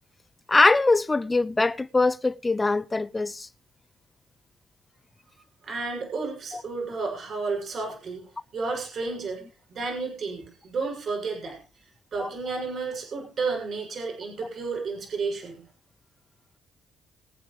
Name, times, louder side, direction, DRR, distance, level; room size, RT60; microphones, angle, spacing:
voice 1, 0.5-3.5 12.2-12.6, left 3 dB, 20° left, 0.5 m, -22 dB
voice 2, 5.6-8.2 8.5-9.4 9.7-11.6 12.1-15.6, right 4 dB, 55° right, 6.3 m, -31 dB
22.5 x 7.9 x 3.2 m
cardioid pair, 90°, 0 cm